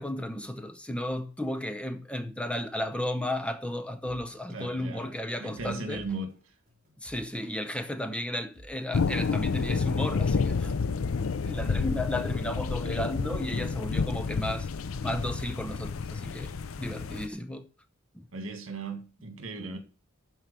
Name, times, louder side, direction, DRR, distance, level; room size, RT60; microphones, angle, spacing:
voice 1, 0.0-6.0 7.0-10.7 11.4-14.7 15.0-16.5 16.8-17.7 18.1-18.2, left 1 dB, 5° left, 0.7 m, -34 dB
sound 1, 4.0-4.3 4.8-5.0 5.5-7.3 7.8-8.0 8.5-10.3 10.8-11.0 11.5-13.0, right 1 dB, 40° right, 3.4 m, -53 dB
voice 2, 4.5-5.1 5.4-6.3 18.3-19.8, right 3 dB, 70° right, 2.0 m, -37 dB
sound 2, 8.9-17.3, left 4 dB, 75° left, 0.6 m, -30 dB
12.0 x 4.7 x 6.7 m
head